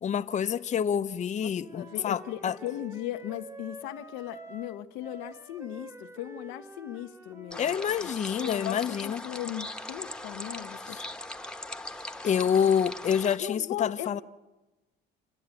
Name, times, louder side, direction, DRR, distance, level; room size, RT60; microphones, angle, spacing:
voice 1, 0.0-2.6 7.6-9.2 10.9-11.0 12.2-14.2, left 8 dB, 35° left, 0.7 m, -27 dB
voice 2, 1.4-7.8 8.3-11.0 13.4-14.2, left 13 dB, 85° left, 0.9 m, -38 dB
Wind instrument woodwind instrument, 1.5-7.8, right 1 dB, 15° right, 1.4 m, -47 dB
sound 1, 7.5-13.4, left 1 dB, 5° left, 1.2 m, -40 dB
28.0 x 11.5 x 9.0 m
cardioid pair, 95°, 20 cm